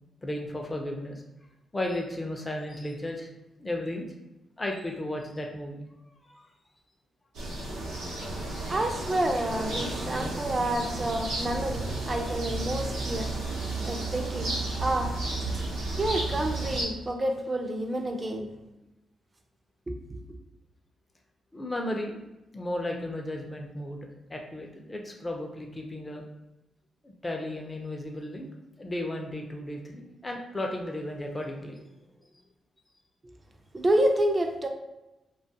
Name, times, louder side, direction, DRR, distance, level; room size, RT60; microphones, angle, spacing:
voice 1, 0.2-1.2 1.7-3.3 3.6-4.1 4.6-6.3 7.9-8.0 21.5-22.2 22.5-26.2 27.0-28.5 28.8-31.8, left 1 dB, 25° left, 1 dB, 0.5 m, -34 dB
sound 1, 7.3-16.8, right 2 dB, 90° right, 0.7 m, -32 dB
voice 2, 8.7-13.3 13.8-15.1 16.0-18.6 19.9-20.2 33.7-34.7, right 1 dB, 30° right, 4 dB, 0.4 m, -29 dB
2.4 x 2.3 x 2.7 m, 0.98 s
supercardioid pair, 60°, 0 cm